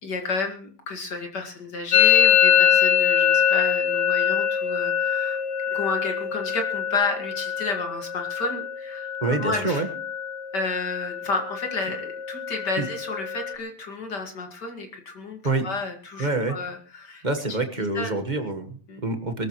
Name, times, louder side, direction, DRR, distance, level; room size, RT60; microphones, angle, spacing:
voice 1, 0.0-5.4 5.7-9.8 10.5-15.4 15.6-17.6 17.9-18.1 18.9-19.0, left 3 dB, 50° left, 4 dB, 2.6 m, -31 dB
Musical instrument, 1.9-9.6 9.8-10.4 10.7-11.2 11.5-13.5, left 9 dB, 85° left, 1.9 m, -23 dB
voice 2, 9.2-9.9 12.8-12.9 15.4-15.7 16.2-16.6 17.2-19.5, right 2 dB, 25° right, 6 dB, 1.3 m, -26 dB
23.0 x 13.5 x 3.1 m, 0.41 s
omnidirectional pair, 2.4 m